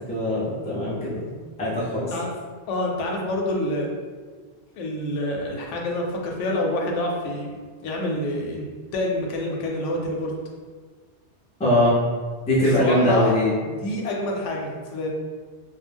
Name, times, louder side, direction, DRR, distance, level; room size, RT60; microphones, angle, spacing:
voice 1, 0.1-1.2 1.6-2.1 11.6-12.0 12.5-13.5, left 1 dB, 10° left, -7 dB, 0.4 m, -21 dB
voice 2, 2.7-3.9 4.7-7.5 7.8-10.3 12.8-15.1, left 1 dB, 85° left, 0 dB, 0.9 m, -27 dB
2.3 x 2.0 x 3.3 m, 1.5 s
omnidirectional pair, 1.2 m